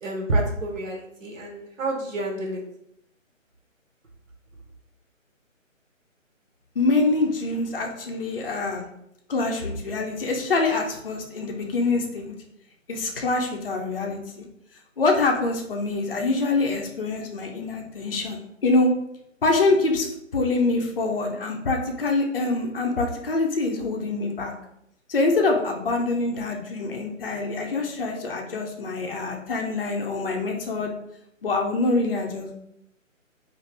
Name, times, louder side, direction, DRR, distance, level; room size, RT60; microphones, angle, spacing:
voice 1, 0.0-2.6, right 2 dB, 70° right, 0 dB, 0.9 m, -28 dB
voice 2, 6.8-8.9 9.3-12.3 12.9-14.4 15.0-18.9 19.4-24.5 25.1-30.9 31.4-32.5, left 3 dB, 45° left, 2 dB, 0.5 m, -25 dB
2.7 x 2.4 x 3.2 m, 0.77 s
hypercardioid pair, 170°, 40 cm